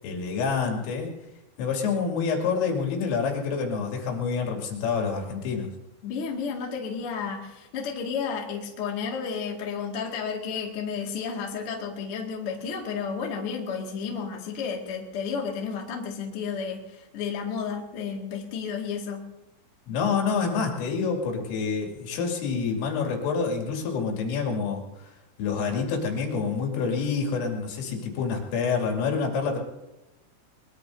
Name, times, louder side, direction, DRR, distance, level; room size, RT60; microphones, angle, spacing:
voice 1, 0.0-1.1 1.6-5.7 19.9-25.1 25.4-29.6, left 5 dB, 80° left, 0 dB, 5.2 m, -27 dB
voice 2, 6.0-19.3, left 6 dB, 45° left, -1 dB, 1.8 m, -32 dB
22.0 x 22.0 x 2.8 m, 0.99 s
omnidirectional pair, 5.9 m